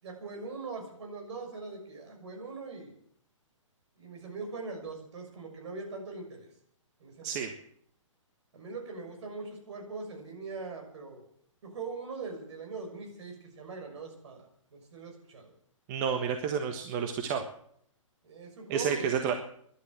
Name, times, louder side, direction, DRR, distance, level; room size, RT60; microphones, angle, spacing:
voice 1, 0.0-2.9 4.0-6.5 7.0-7.4 8.5-11.2 11.6-15.5 18.2-19.4, right 4 dB, 60° right, 3 dB, 6.5 m, -41 dB
voice 2, 15.9-17.4 18.7-19.3, right 7 dB, 35° right, 5 dB, 1.4 m, -30 dB
16.0 x 11.5 x 7.7 m, 0.67 s
figure-of-eight pair, 130°, 17 cm